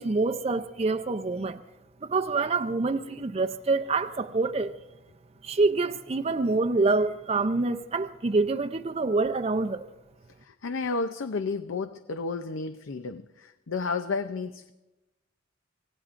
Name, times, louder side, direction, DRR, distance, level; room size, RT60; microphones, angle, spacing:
voice 1, 0.0-1.6 2.0-4.7 5.4-9.9, right 3 dB, 30° right, 0.5 m, -26 dB
voice 2, 10.4-14.7, left 4 dB, 80° left, 0.6 m, -32 dB
26.0 x 17.5 x 2.5 m
head